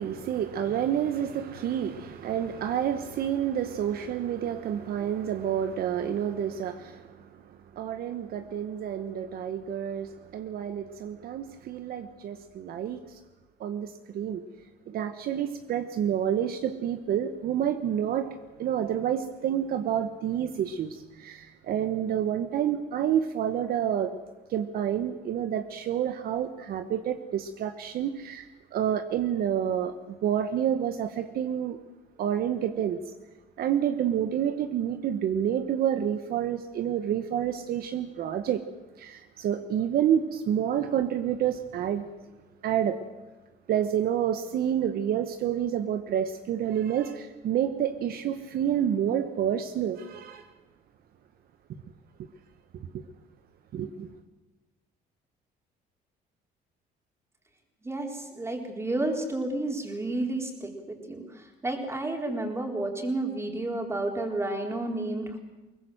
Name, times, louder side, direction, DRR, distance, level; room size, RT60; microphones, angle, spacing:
voice 1, 0.0-13.2 13.6-14.4 14.9-18.3 18.6-24.2 24.5-31.8 32.2-33.0 33.6-38.6 39.0-42.0 42.6-43.0 43.7-50.5 52.7-53.0 53.7-54.1, right 9 dB, 65° right, 9 dB, 1.2 m, -29 dB
voice 2, 57.8-65.4, right 2 dB, 15° right, 2 dB, 4.2 m, -31 dB
22.0 x 19.5 x 7.8 m, 1.1 s
cardioid pair, 110°, 17 cm